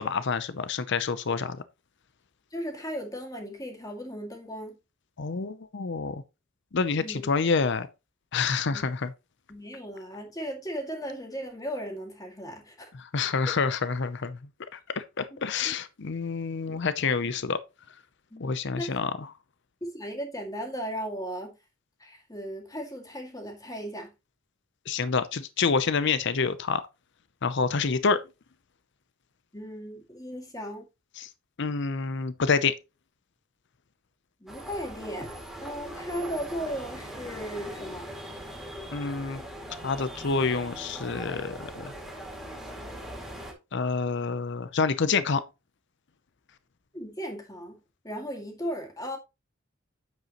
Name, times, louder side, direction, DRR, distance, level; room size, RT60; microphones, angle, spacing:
voice 1, 0.0-1.6 5.2-6.2 6.7-7.9 8.3-9.1 13.0-14.4 14.7-17.6 18.4-19.3 24.9-26.8 27.4-28.2 31.2-31.3 31.6-32.7 38.9-39.4 39.8-41.9 43.7-45.4, left 5 dB, 55° left, 0.6 m, -27 dB
voice 2, 2.5-4.8 7.0-7.3 8.7-8.8 9.5-12.9 13.5-13.6 15.3-15.7 18.3-19.2 19.8-21.6 22.0-24.1 29.5-30.8 34.4-38.1 46.9-47.8 48.0-49.2, equal, 15° left, 2.2 m, -36 dB
sound 1, 34.5-43.5, equal, ahead, 2.3 m, -41 dB
9.3 x 7.5 x 3.0 m
head